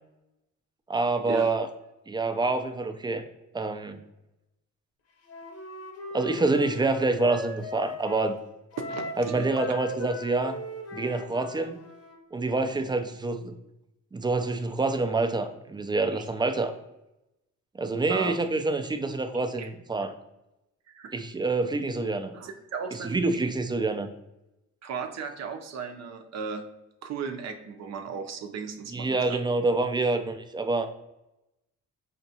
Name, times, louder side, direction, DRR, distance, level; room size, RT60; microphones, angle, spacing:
voice 1, 0.9-1.7 2.1-3.2 3.5-4.0 6.1-8.4 9.2-10.6 10.9-11.8 12.3-13.5 14.1-16.7 17.7-20.1 21.1-22.3 22.9-24.1 28.9-30.9, right 3 dB, 15° right, 7 dB, 0.4 m, -27 dB
Wind instrument woodwind instrument, 5.3-8.3 8.7-12.2, left 2 dB, 55° left, 0.8 m, -39 dB
voice 2, 8.9-9.5 16.1-16.2 18.1-18.4 19.6-19.7 20.9-21.1 22.3-23.2 24.8-26.6 27.0-29.4, right 6 dB, 60° right, 5 dB, 0.6 m, -36 dB
4.4 x 2.9 x 2.7 m, 0.92 s
cardioid pair, 90°, 30 cm